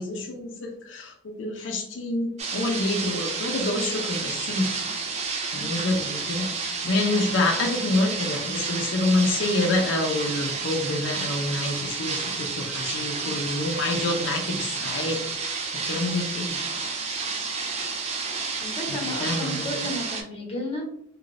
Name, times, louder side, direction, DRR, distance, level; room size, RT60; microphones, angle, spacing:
voice 1, 0.0-4.7 5.5-16.7 18.9-19.8, left 2 dB, 85° left, 1 dB, 0.5 m, -27 dB
sound 1, 2.4-20.2, right 4 dB, 35° right, 0.6 m, -30 dB
voice 2, 5.5-5.9 18.6-20.8, left 1 dB, 30° left, -2 dB, 1.2 m, -33 dB
3.2 x 2.9 x 2.5 m, 0.69 s
head